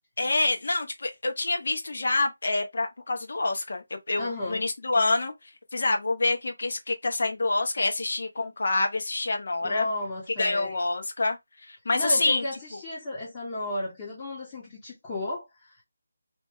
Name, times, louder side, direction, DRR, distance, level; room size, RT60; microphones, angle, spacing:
voice 1, 0.2-9.9 10.4-12.4, left 2 dB, 60° left, 0.8 m, -27 dB
voice 2, 4.2-4.7 9.6-10.8 11.9-15.8, left 1 dB, 20° left, 0.7 m, -33 dB
2.9 x 2.1 x 3.4 m
figure-of-eight pair, 165°, 0 cm